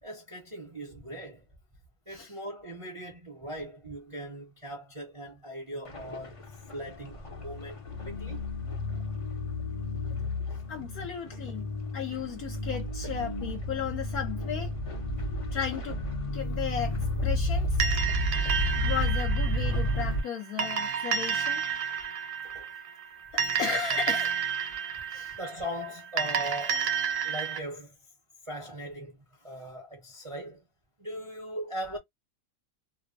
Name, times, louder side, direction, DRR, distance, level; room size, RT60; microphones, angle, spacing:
voice 1, 0.0-1.4 2.1-6.4 6.7-8.4 20.6-20.8 22.4-22.7 25.4-26.9 27.2-28.0 28.4-30.6 31.0-32.0, equal, 25° right, 0.7 m, -39 dB
sound 1, 5.9-20.2, left 1 dB, 35° left, 0.5 m, -31 dB
voice 2, 10.7-11.6 11.9-14.7 15.5-16.0 16.3-16.9 17.2-17.8 18.8-21.6 23.3-24.4 25.1-25.3, left 7 dB, 65° left, 1.1 m, -34 dB
sound 2, 17.8-27.6, right 7 dB, 65° right, 1.2 m, -31 dB
2.9 x 2.2 x 2.5 m
omnidirectional pair, 1.9 m